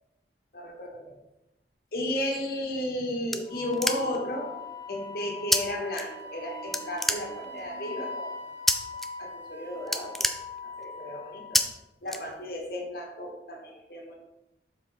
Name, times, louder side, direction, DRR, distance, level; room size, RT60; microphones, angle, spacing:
voice 1, 0.5-1.1 1.9-4.5 4.9-8.5 9.2-10.3 10.6-11.6 12.0-14.2, left 1 dB, 55° left, 0 dB, 1.6 m, -34 dB
sound 1, 2.6-4.3 5.5-5.6 5.9-6.4 6.7-7.7 8.7-9.1 9.4-9.5 9.8-11.0 11.5-11.6 12.1-12.7, left 1 dB, ahead, 0.3 m, -27 dB
Wind instrument woodwind instrument, 3.5-11.7, left 3 dB, 25° left, 1.9 m, -41 dB
sound 2, 3.5-7.9, equal, 15° right, 2.6 m, -51 dB
7.4 x 5.0 x 4.1 m, 0.92 s
head